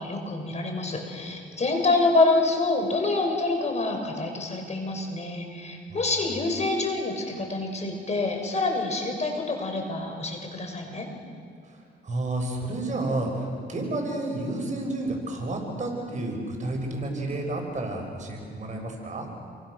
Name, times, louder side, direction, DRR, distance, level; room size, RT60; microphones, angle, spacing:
voice 1, 0.0-11.1, left 3 dB, 35° left, 2 dB, 6.3 m, -26 dB
voice 2, 11.7-19.3, right 2 dB, 40° right, 2 dB, 6.6 m, -31 dB
29.5 x 23.5 x 6.7 m, 2.3 s
cardioid pair, 90°, 20 cm